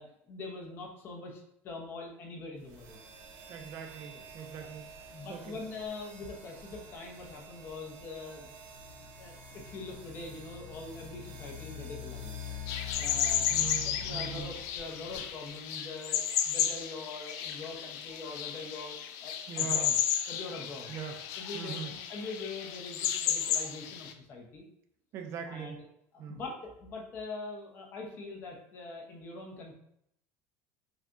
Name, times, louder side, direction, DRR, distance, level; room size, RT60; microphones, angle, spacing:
voice 1, 0.0-3.0 5.1-8.5 9.0-12.4 13.0-19.0 19.2-19.9 20.3-20.9 21.4-24.6 25.5-25.8 26.1-29.7, left 3 dB, 30° left, 0 dB, 0.9 m, -43 dB
sound 1, 2.6-15.5, left 5 dB, 75° right, 0.9 m, -46 dB
voice 2, 3.5-5.6 13.5-14.6 19.5-19.9 20.9-21.2 21.5-21.9 25.1-25.8 26.2-26.4, right 7 dB, 40° right, 5 dB, 0.5 m, -41 dB
sound 2, 12.7-24.1, left 9 dB, 55° left, 0.4 m, -33 dB
5.7 x 2.3 x 2.6 m, 0.75 s
cardioid pair, 160°, 7 cm